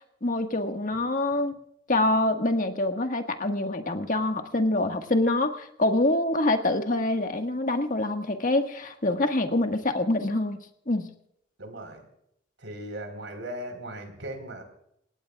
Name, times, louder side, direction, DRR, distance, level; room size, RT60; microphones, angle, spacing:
voice 1, 0.2-1.5 1.9-10.6 10.9-11.1, left 2 dB, 45° left, 5 dB, 1.6 m, -25 dB
voice 2, 11.6-12.1 12.6-14.6, right 1 dB, 80° right, 5 dB, 4.2 m, -38 dB
29.5 x 17.0 x 2.4 m, 0.73 s
head